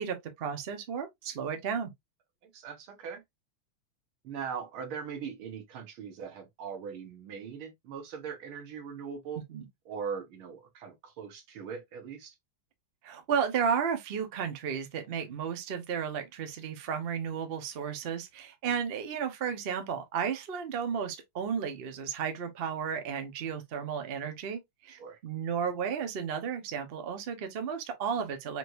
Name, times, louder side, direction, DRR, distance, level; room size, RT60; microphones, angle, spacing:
voice 1, 0.0-1.9 9.5-9.7 13.0-28.6, right 7 dB, 50° right, 0.7 m, -33 dB
voice 2, 2.4-3.2 4.2-9.4 9.9-12.4 24.9-25.2, right 6 dB, 85° right, 2.0 m, -40 dB
5.0 x 3.1 x 2.5 m
omnidirectional pair, 2.2 m